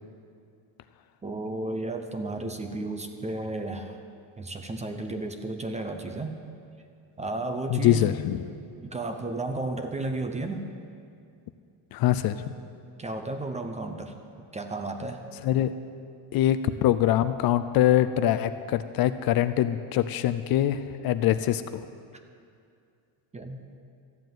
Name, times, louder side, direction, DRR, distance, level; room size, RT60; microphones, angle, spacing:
voice 1, 1.2-4.0 4.4-6.4 7.2-8.1 8.8-10.7 13.0-15.2 23.3-23.6, right 2 dB, 15° right, 6 dB, 0.5 m, -33 dB
voice 2, 7.7-8.4 11.9-12.4 15.4-15.7 16.3-21.8, left 12 dB, 50° left, 12 dB, 0.4 m, -24 dB
13.5 x 7.7 x 9.2 m, 2.4 s
cardioid pair, 175°, 48 cm